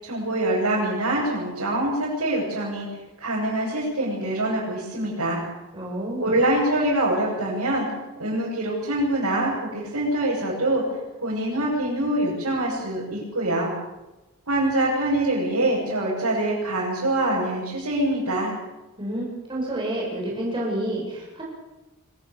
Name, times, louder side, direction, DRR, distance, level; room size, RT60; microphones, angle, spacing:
voice 1, 0.0-2.9 3.2-5.4 6.2-7.9 8.2-10.8 11.2-13.7 14.5-18.5, right 1 dB, 85° right, -7 dB, 7.8 m, -24 dB
voice 2, 5.7-6.4 19.0-21.4, right 1 dB, 25° right, -4 dB, 7.1 m, -29 dB
24.5 x 17.5 x 7.2 m, 1.0 s
head